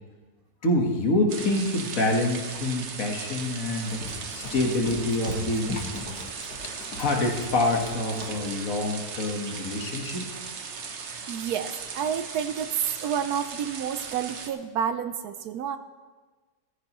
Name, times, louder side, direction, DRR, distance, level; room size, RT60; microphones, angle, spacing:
voice 1, 0.6-5.7 6.6-10.4, left 2 dB, 55° left, 1 dB, 1.8 m, -26 dB
sound 1, 1.3-14.5, right 5 dB, 50° right, 1.0 m, -38 dB
Run, 3.8-8.5, left 2 dB, 70° left, 2.2 m, -39 dB
voice 2, 11.3-12.7 13.0-15.8, right 8 dB, 75° right, 10 dB, 1.1 m, -30 dB
14.5 x 14.0 x 3.0 m, 1.3 s
omnidirectional pair, 1.8 m